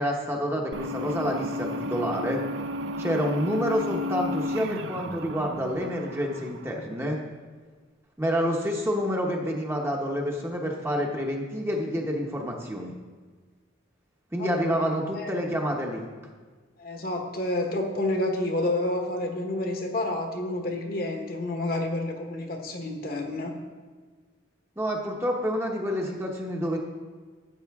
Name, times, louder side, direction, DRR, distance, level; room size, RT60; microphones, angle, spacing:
voice 1, 0.0-2.4 3.0-7.2 8.2-12.9 14.3-16.0 24.8-26.8, equal, 10° right, 0 dB, 0.9 m, -28 dB
sound 1, 0.7-7.1, left 1 dB, 70° right, 0.5 m, -33 dB
voice 2, 14.4-14.7 15.1-15.3 16.8-23.5, left 1 dB, 45° left, 3 dB, 1.2 m, -29 dB
13.0 x 8.2 x 3.6 m, 1.4 s
head